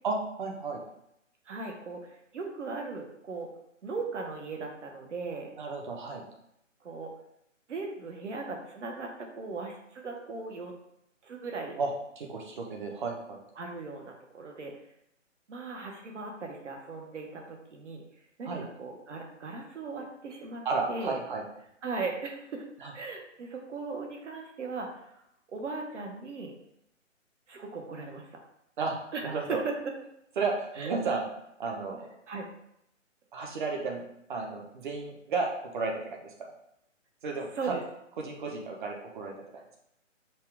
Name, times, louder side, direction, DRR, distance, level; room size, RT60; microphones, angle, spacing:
voice 1, 0.0-0.8 5.6-6.2 11.8-11.9 12.2-13.4 18.4-18.6 20.6-21.4 22.8-22.9 28.8-29.0 29.2-29.6 30.4-31.2 31.6-32.1 33.3-34.0 34.3-36.5 37.2-37.8 38.2-39.6, right 4 dB, 40° right, 1 dB, 0.9 m, -33 dB
voice 2, 1.5-3.5 3.8-5.6 6.8-7.1 7.7-10.7 11.2-11.8 13.6-14.7 15.5-18.0 18.4-21.2 21.8-22.7 22.9-25.2 25.5-26.6 27.5-28.4 29.1-29.7 30.8-30.9 32.3-32.5 37.5-37.8, right 4 dB, 65° right, 1 dB, 1.1 m, -38 dB
5.6 x 2.4 x 3.4 m, 0.78 s
hypercardioid pair, 145°, 39 cm